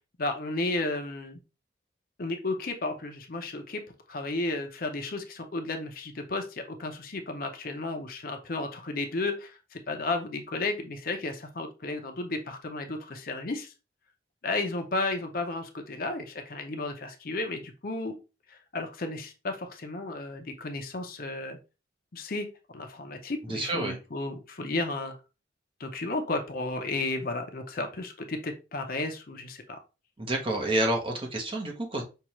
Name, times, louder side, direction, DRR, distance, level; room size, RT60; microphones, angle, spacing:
voice 1, 0.2-1.4 2.2-3.8 4.1-13.7 14.4-18.1 18.5-21.6 22.1-22.5 22.7-25.2 25.8-29.8, left 2 dB, 50° left, 5 dB, 0.6 m, -33 dB
voice 2, 23.5-24.0 30.2-32.0, right 1 dB, 30° right, 1 dB, 0.9 m, -29 dB
5.5 x 2.4 x 3.0 m, 0.30 s
head